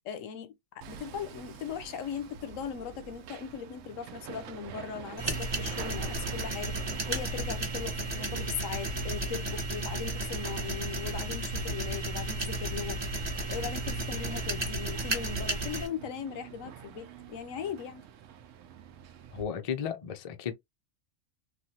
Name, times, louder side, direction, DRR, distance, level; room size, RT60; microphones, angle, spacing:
voice 1, 0.0-18.0, left 7 dB, 85° left, 1.0 m, -39 dB
Hammer, 0.8-19.4, right 8 dB, 75° right, 0.9 m, -47 dB
sound 1, 5.2-15.9, right 2 dB, 25° right, 0.8 m, -33 dB
voice 2, 19.3-20.5, left 7 dB, 50° left, 0.4 m, -34 dB
3.1 x 2.4 x 2.7 m
omnidirectional pair, 1.3 m